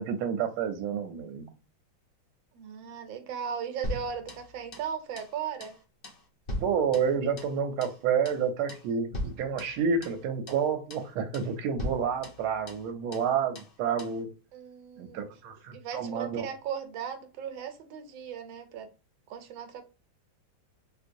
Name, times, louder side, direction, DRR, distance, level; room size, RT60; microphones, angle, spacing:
voice 1, 0.0-1.4 6.6-14.3 15.0-16.4, right 6 dB, 90° right, 1.4 m, -29 dB
voice 2, 2.5-5.8 14.5-15.3 15.7-18.9 19.3-19.8, right 7 dB, 75° right, 1.4 m, -37 dB
sound 1, 3.8-4.9 5.2-5.3 5.6-5.8 6.0-7.6 7.8-8.0 8.2-8.4 8.7-8.9 9.1-10.2 10.5-10.6 10.9-11.1 11.3-11.5 11.8-12.9 13.1-13.3 13.5-13.7 14.0-14.2, left 1 dB, 70° left, 0.5 m, -39 dB
3.7 x 2.8 x 2.5 m
omnidirectional pair, 2.2 m